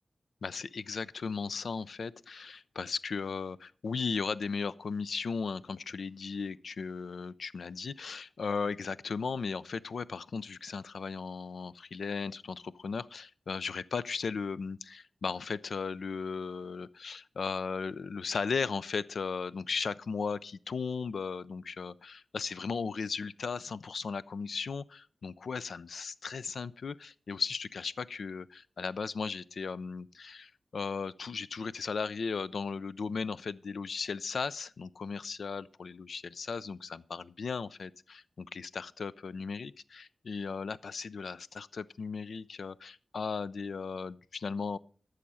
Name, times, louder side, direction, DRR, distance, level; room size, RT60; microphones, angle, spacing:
voice 1, 0.4-44.8, left 5 dB, 75° left, 0.4 m, -36 dB
13.0 x 6.4 x 5.5 m
wide cardioid pair, 80°, 0 cm